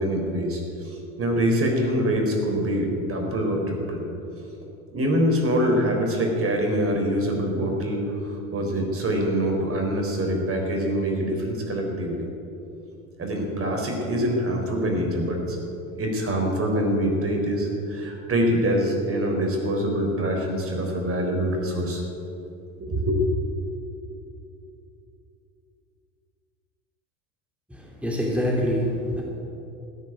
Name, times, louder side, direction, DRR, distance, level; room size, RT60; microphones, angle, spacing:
voice 1, 0.0-4.0 4.9-8.0 8.5-12.3 13.2-15.6 16.0-22.0 22.8-23.2, equal, 30° right, 2 dB, 4.1 m, -24 dB
voice 2, 27.7-29.2, equal, 5° right, -2 dB, 2.9 m, -25 dB
14.5 x 9.8 x 8.9 m, 2.8 s
hypercardioid pair, 80°, 42 cm